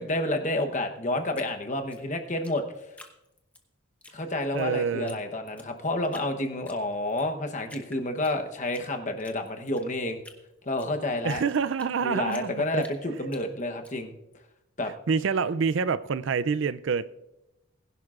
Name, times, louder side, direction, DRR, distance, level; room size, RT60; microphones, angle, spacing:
voice 1, 0.0-2.6 4.1-10.2 10.6-11.4 12.0-14.2 14.8-14.9, left 1 dB, 35° left, 1.0 m, -29 dB
Drip, 1.3-3.6 4.0-4.7 5.1-5.2 5.5-6.3 6.7-7.3 7.7-8.9 9.2-12.0 12.3-13.9, left 1 dB, 5° left, 0.8 m, -49 dB
voice 2, 4.5-5.2 11.2-12.8 15.1-17.0, right 5 dB, 65° right, 0.4 m, -27 dB
20.5 x 11.0 x 2.5 m
head